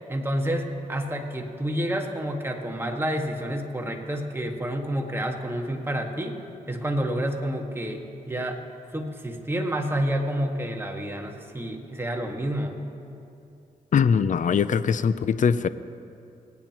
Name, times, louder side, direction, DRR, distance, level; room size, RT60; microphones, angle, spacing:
voice 1, 0.1-6.4 6.7-8.6 8.9-12.8, right 1 dB, 15° right, 2 dB, 1.8 m, -29 dB
voice 2, 13.9-15.7, left 6 dB, 55° left, 14 dB, 0.5 m, -21 dB
22.0 x 9.1 x 3.0 m, 2.7 s
supercardioid pair, 50°, 16 cm